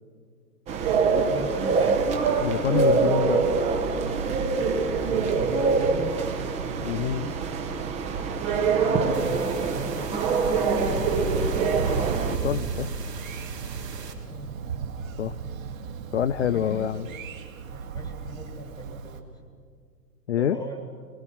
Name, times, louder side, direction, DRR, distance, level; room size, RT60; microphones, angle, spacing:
sound 1, 0.7-12.4, right 4 dB, 15° right, 0.9 m, -24 dB
voice 1, 1.3-2.0 4.9-6.1 8.7-11.8 14.3-14.6 16.4-17.2 17.7-19.6 20.4-20.9, right 2 dB, 5° left, 3 dB, 1.6 m, -38 dB
voice 2, 2.4-3.4 6.8-7.3 12.3-12.9 15.2-15.4 16.1-17.1 20.3-20.6, left 9 dB, 45° left, 12 dB, 0.4 m, -26 dB
sound 2, 9.1-14.1, right 6 dB, 70° right, 3.1 m, -41 dB
Thunder, 10.8-19.2, right 6 dB, 55° right, 2.1 m, -34 dB
24.0 x 21.0 x 5.8 m, 2.1 s
figure-of-eight pair, 130°, 49 cm